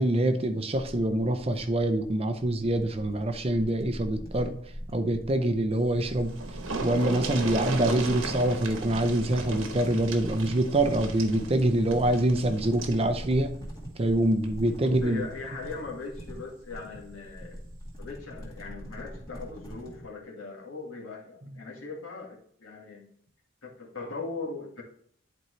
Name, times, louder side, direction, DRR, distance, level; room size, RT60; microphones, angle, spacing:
voice 1, 0.0-4.5 4.9-6.3 6.8-13.5 14.0-15.2 21.5-21.6, right 1 dB, 30° right, 8 dB, 0.5 m, -25 dB
sound 1, 0.7-20.1, equal, 15° left, 2.0 m, -42 dB
sound 2, 5.9-6.0 6.2-13.0 14.3-14.5 14.9-15.0, right 3 dB, 75° right, 1.1 m, -36 dB
voice 2, 14.8-17.6 18.0-23.0 23.6-24.8, left 3 dB, 75° left, -2 dB, 1.9 m, -39 dB
10.5 x 4.4 x 3.2 m, 0.63 s
head